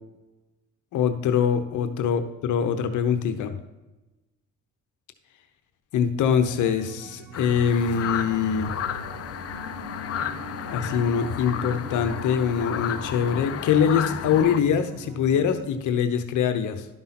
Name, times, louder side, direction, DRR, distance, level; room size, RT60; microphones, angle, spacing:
voice 1, 0.9-3.6 5.9-8.7 10.6-16.9, left 7 dB, 80° left, 8 dB, 0.9 m, -23 dB
sound 1, 6.2-15.6, right 4 dB, 85° right, 1.2 m, -41 dB
sound 2, 7.3-14.6, left 9 dB, 50° left, 0.6 m, -32 dB
12.0 x 5.5 x 4.2 m, 1.0 s
cardioid pair, 90°, 30 cm